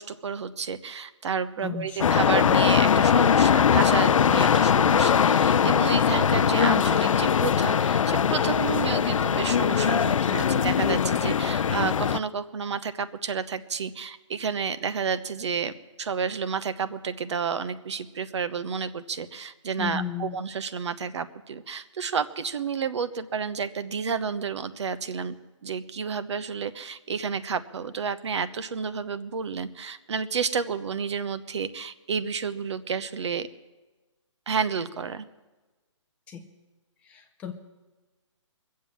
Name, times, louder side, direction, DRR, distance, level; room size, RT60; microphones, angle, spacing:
voice 1, 0.0-15.7 16.0-25.3 25.6-33.5 34.5-35.3, right 6 dB, 60° right, 12 dB, 0.9 m, -30 dB
voice 2, 1.6-2.2 19.8-20.4 36.3-36.5 37.0-37.5, left 7 dB, 10° left, 4 dB, 0.4 m, -34 dB
sound 1, 2.0-12.2, left 7 dB, 85° left, 0.5 m, -21 dB
22.5 x 7.5 x 7.4 m, 1.2 s
hypercardioid pair, 160°, 16 cm